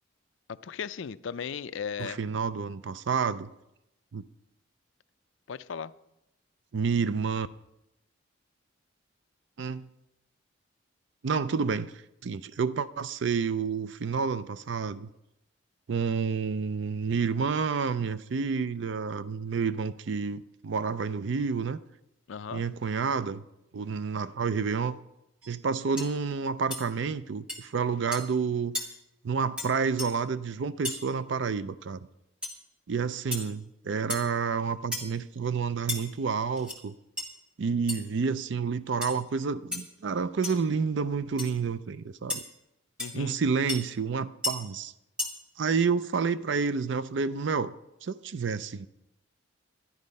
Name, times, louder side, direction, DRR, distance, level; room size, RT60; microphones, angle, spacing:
voice 1, 0.5-2.2 5.5-5.9 22.3-22.6 43.0-43.4, left 6 dB, 75° left, 0.4 m, -36 dB
voice 2, 2.0-3.5 4.1-4.2 6.7-7.5 9.6-9.9 11.2-11.9 12.2-15.1 15.9-21.8 22.5-23.4 23.7-25.0 25.5-28.7 29.2-32.1 32.9-36.9 37.6-42.4 43.1-44.9 45.6-47.7 48.0-48.9, right 5 dB, 65° right, 0.4 m, -29 dB
sound 1, 25.4-25.6 26.0-26.1 26.7-26.8 27.5-27.6 28.1-28.3 28.7-28.9 29.6-29.7 30.0-30.1 30.8-31.0 32.4-32.6 33.3-33.5 34.1-34.3 34.9-35.2 35.9-36.0 36.6-36.8 37.2-37.3 37.9-38.0 39.0-39.2 39.7-39.8 40.4-40.6 41.4-41.5 42.3-42.4 43.0-43.1 43.7-43.8 44.4-44.5 45.2-45.3, left 2 dB, 5° right, 1.7 m, -33 dB
11.5 x 11.0 x 5.3 m
head